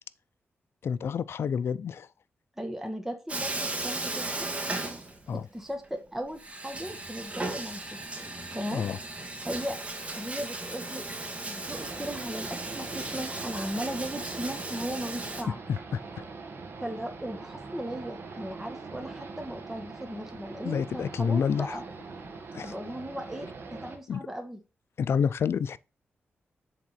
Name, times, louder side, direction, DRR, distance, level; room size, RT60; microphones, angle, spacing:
voice 1, 0.8-2.1 5.3-5.4 8.7-9.0 15.7-16.0 20.6-21.8 22.5-22.7 24.1-24.2 25.0-25.8, left 7 dB, 75° left, 0.4 m, -28 dB
voice 2, 2.6-4.5 5.3-8.0 8.5-8.8 9.4-9.8 10.1-11.1 11.5-15.6 16.8-21.8 22.6-24.6, equal, 5° right, 1.3 m, -37 dB
Bathtub (filling or washing), 3.3-5.6 5.8-5.9 6.4-15.4, right 2 dB, 30° right, 1.8 m, -36 dB
sound 1, 11.6-24.0, right 4 dB, 65° right, 1.8 m, -43 dB
7.6 x 3.6 x 5.8 m
cardioid pair, 90°, 4 cm